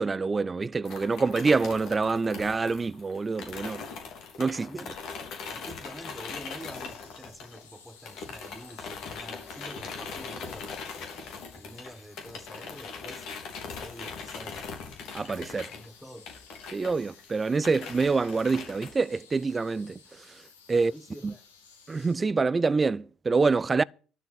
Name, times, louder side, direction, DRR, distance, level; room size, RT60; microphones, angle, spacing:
voice 1, 0.0-3.8 4.4-4.7 15.1-15.7 16.7-20.0 20.7-20.9 21.2-21.3 21.9-23.8, right 4 dB, 25° right, 0.5 m, -26 dB
sound 1, 0.9-7.8 8.1-18.9, left 5 dB, 60° left, 3.3 m, -41 dB
voice 2, 4.5-5.0 5.5-10.7 11.3-13.3 13.8-14.7 15.6-16.4 20.7-21.4, equal, ahead, 1.3 m, -47 dB
sound 2, 6.6-22.2, left 5 dB, 85° left, 2.1 m, -56 dB
12.0 x 5.7 x 9.2 m
hypercardioid pair, 55°, 0 cm